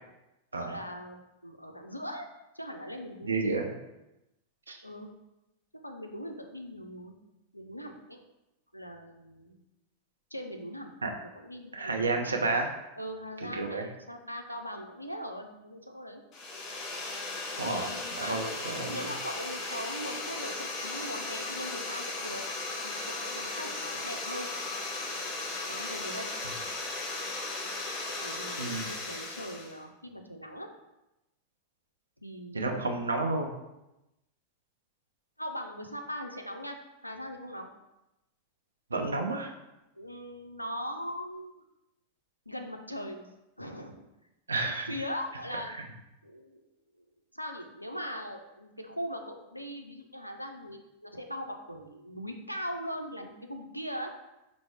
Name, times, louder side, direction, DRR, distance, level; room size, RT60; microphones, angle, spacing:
voice 1, 0.6-2.3 2.5-3.4 4.8-5.1 5.7-7.2 7.5-8.2 8.7-9.6 10.3-10.9 11.3-12.4 13.0-16.2 17.6-18.4 18.9-22.4 22.8-24.5 25.7-26.3 28.2-30.7 32.2-33.1 35.4-37.7 39.9-41.6 42.5-43.3 43.6-44.0 44.7-45.8 46.2-46.6 47.0-47.1 47.3-54.1, equal, 90° left, 4 dB, 0.4 m, -40 dB
voice 2, 3.2-3.6 4.7-4.8 11.0-11.1 11.7-12.7 13.5-13.8 17.6-17.9 18.2-19.0 28.6-28.9 32.5-33.5 38.9-39.5 44.5-44.9 45.8-45.9, right 3 dB, 75° right, 2 dB, 0.5 m, -30 dB
sound 1, 16.3-29.8, left 2 dB, 35° left, 0.6 m, -36 dB
4.4 x 2.0 x 3.5 m, 0.94 s
figure-of-eight pair, 90°, 0 cm